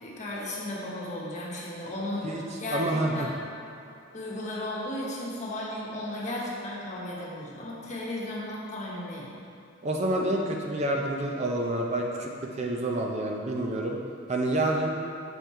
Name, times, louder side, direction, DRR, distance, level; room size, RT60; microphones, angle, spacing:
voice 1, 0.0-3.4 4.1-9.3, left 1 dB, 35° left, -5 dB, 1.2 m, -35 dB
voice 2, 2.7-3.3 9.8-14.0 14.3-15.0, right 1 dB, 35° right, 0 dB, 0.5 m, -28 dB
6.3 x 5.3 x 4.4 m, 2.7 s
head